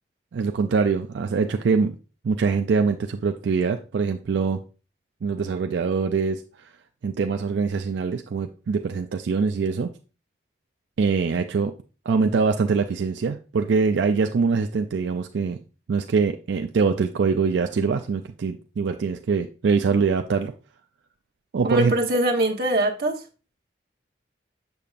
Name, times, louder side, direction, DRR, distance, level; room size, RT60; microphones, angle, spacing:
voice 1, 0.3-1.9 2.2-4.6 5.2-6.7 7.0-9.9 11.0-11.7 12.1-15.6 15.9-20.5 21.5-21.9, right 5 dB, 80° right, 0.4 m, -23 dB
voice 2, 21.6-23.2, right 1 dB, 55° right, 1.0 m, -22 dB
6.8 x 6.7 x 2.4 m
head